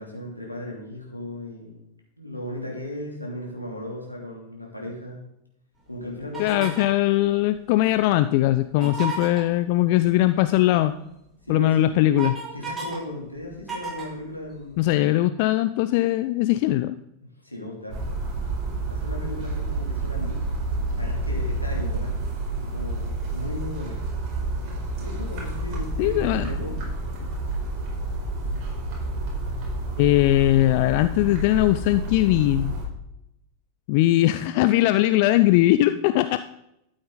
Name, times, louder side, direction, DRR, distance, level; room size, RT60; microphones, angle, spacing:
voice 1, 0.0-1.8 2.2-5.2 5.9-6.8 8.8-9.0 11.4-12.1 12.5-14.9 17.2-18.1 18.9-20.4 21.0-22.1 22.4-24.0 25.0-26.8, left 1 dB, 85° left, -1 dB, 2.9 m, -36 dB
sound 1, 6.3-7.0 8.7-9.4 11.1-11.2 11.6-13.0 13.3-14.9, right 4 dB, 10° right, 5.0 m, -33 dB
voice 2, 6.4-10.9 11.5-12.4 14.8-17.0 26.0-26.5 30.0-32.7 33.9-36.4, left 15 dB, 45° left, 12 dB, 0.4 m, -20 dB
sound 2, 17.9-32.8, right 2 dB, 40° right, 4.4 m, -29 dB
12.5 x 8.8 x 3.9 m, 0.80 s
figure-of-eight pair, 90°, 0 cm